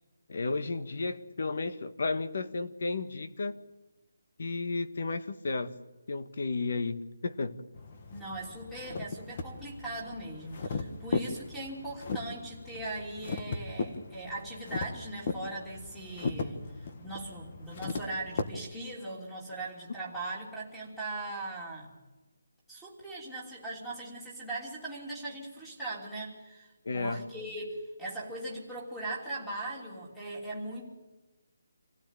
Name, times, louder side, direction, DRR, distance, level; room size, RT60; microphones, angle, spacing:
voice 1, 0.3-3.6 4.4-5.7 6.1-7.6 26.8-27.2, left 3 dB, 40° left, 11 dB, 1.5 m, -33 dB
sound 1, 7.7-18.4, left 4 dB, 25° left, 1.5 m, -37 dB
voice 2, 8.1-21.9 22.7-30.9, right 2 dB, ahead, -4 dB, 3.2 m, -40 dB
26.5 x 16.5 x 9.1 m, 1.1 s
hypercardioid pair, 180°, 0 cm